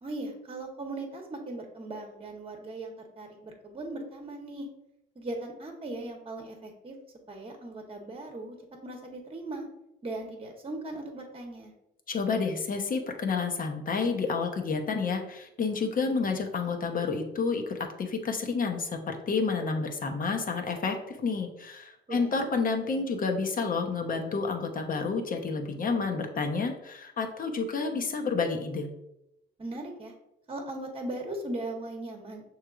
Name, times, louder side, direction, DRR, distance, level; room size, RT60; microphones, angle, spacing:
voice 1, 0.0-4.7 5.1-7.0 7.3-8.6 8.8-9.7 10.0-11.7 22.1-22.4 29.6-30.1 30.5-32.4, right 2 dB, 30° right, 2 dB, 1.0 m, -38 dB
voice 2, 12.1-28.9, left 4 dB, 45° left, 4 dB, 0.8 m, -30 dB
6.4 x 3.1 x 2.4 m, 0.85 s
cardioid pair, 90°, 20 cm